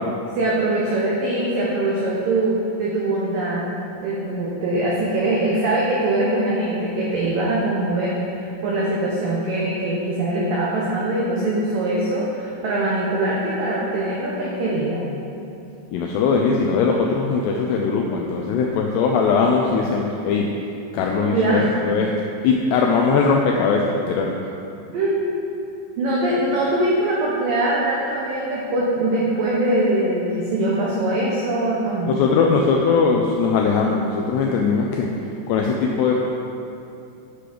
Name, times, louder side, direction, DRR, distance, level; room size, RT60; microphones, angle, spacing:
voice 1, 0.4-3.7 4.0-15.0 21.2-21.7 24.9-25.4 26.0-32.2, right 1 dB, 85° right, -5 dB, 1.9 m, -22 dB
voice 2, 15.9-20.5 20.9-22.1 22.4-24.3 32.1-35.1 35.5-36.2, left 5 dB, 85° left, 0 dB, 2.4 m, -20 dB
8.3 x 7.8 x 5.0 m, 2.6 s
omnidirectional pair, 5.5 m